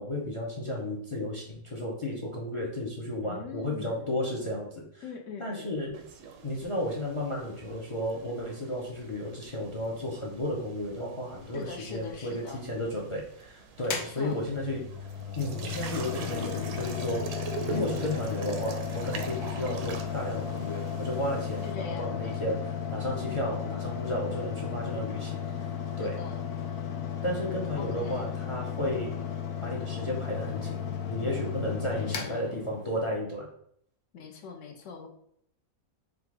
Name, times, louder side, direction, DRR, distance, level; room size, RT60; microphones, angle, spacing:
voice 1, 0.0-5.0 5.4-6.0 6.4-14.8 15.4-17.2 17.6-25.4 26.0-26.2 27.2-29.1 29.6-33.5, left 1 dB, 40° left, -2 dB, 0.4 m, -33 dB
voice 2, 3.2-4.1 5.0-5.7 11.5-12.6 13.9-14.4 17.7-18.0 21.6-22.4 23.3-23.6 26.0-26.4 27.8-28.3 31.9-32.5 34.1-35.1, left 5 dB, 65° left, 4 dB, 0.9 m, -42 dB
sound 1, 5.9-21.7, right 5 dB, 70° right, 0.9 m, -44 dB
Mechanical fan, 13.8-33.2, left 8 dB, 90° left, 1.1 m, -35 dB
3.7 x 2.4 x 4.5 m, 0.69 s
omnidirectional pair, 1.5 m